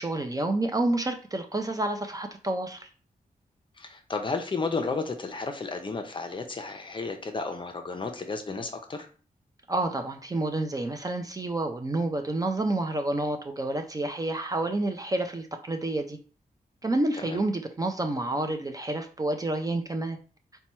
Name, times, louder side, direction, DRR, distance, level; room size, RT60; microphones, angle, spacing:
voice 1, 0.0-2.9 9.7-16.2 16.8-20.2, right 2 dB, 25° right, 5 dB, 0.4 m, -29 dB
voice 2, 3.8-9.1 17.3-17.4, left 4 dB, 35° left, 5 dB, 0.6 m, -32 dB
4.3 x 2.2 x 4.2 m, 0.39 s
wide cardioid pair, 155°, 15 cm